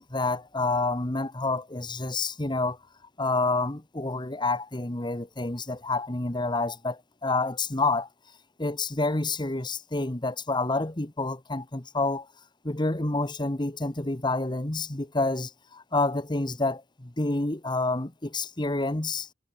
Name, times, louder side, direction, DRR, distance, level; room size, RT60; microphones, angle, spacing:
voice 1, 0.0-2.8 3.2-8.1 8.6-12.3 12.6-19.3, left 2 dB, 25° left, 1.3 m, -28 dB
head